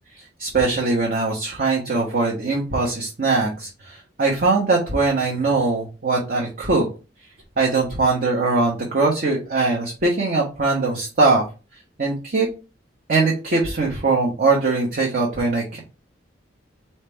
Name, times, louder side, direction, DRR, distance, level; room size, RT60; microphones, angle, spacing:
voice 1, 0.1-6.9 7.6-11.4 12.0-12.5 13.1-15.8, right 3 dB, 50° right, -2 dB, 1.1 m, -21 dB
4.3 x 3.2 x 3.4 m, 0.31 s
head